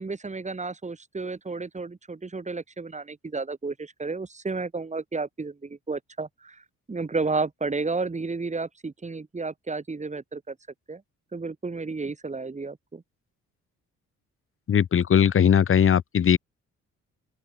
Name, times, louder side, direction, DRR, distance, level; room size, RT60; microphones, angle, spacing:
voice 1, 0.0-10.6 10.9-11.0 11.3-13.0, right 3 dB, 25° right, 3.7 m, -32 dB
voice 2, 14.7-16.4, left 8 dB, 45° left, 1.2 m, -19 dB
open air
cardioid pair, 90°, 30 cm